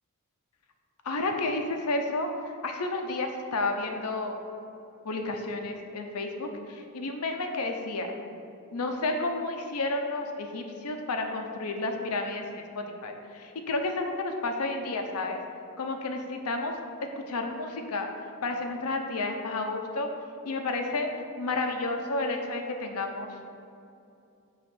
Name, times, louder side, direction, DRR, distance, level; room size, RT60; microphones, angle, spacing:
voice 1, 1.0-2.3 2.6-4.4 5.0-8.1 8.7-15.4 15.8-16.8 17.0-18.1 18.4-20.1 20.4-21.1 21.4-23.4, left 2 dB, 85° left, 4 dB, 0.7 m, -31 dB
6.8 x 3.1 x 6.0 m, 2.6 s
head